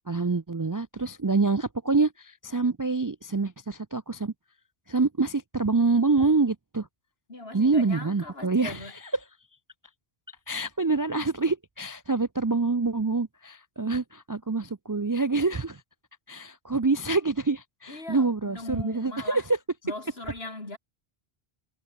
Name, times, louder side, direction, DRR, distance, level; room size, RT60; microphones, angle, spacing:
voice 1, 0.1-4.3 4.9-6.9 7.5-8.8 10.5-15.8 16.3-19.4, right 3 dB, 30° right, 0.4 m, -26 dB
voice 2, 7.3-9.0 17.9-19.5 19.8-20.8, left 2 dB, 75° left, 4.4 m, -39 dB
omnidirectional pair, 1.0 m